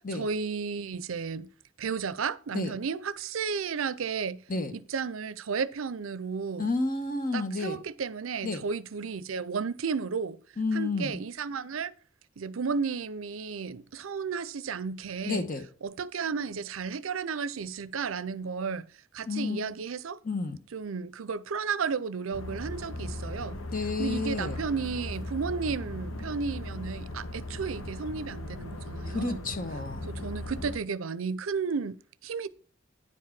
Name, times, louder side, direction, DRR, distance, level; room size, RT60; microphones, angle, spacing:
voice 1, 0.0-1.5 1.8-4.4 4.7-6.7 7.3-10.4 10.7-11.9 12.4-15.4 15.8-18.9 19.1-20.2 20.7-23.6 24.0-29.4 30.1-32.5, right 5 dB, 85° right, 0.6 m, -33 dB
voice 2, 6.6-7.8 8.4-8.6 10.6-11.2 15.2-15.6 19.3-19.6 20.2-20.6 23.7-24.6 29.1-30.1, left 3 dB, 45° left, 1.2 m, -31 dB
sound 1, 22.3-30.8, left 1 dB, 85° left, 1.1 m, -38 dB
10.0 x 4.7 x 5.9 m
head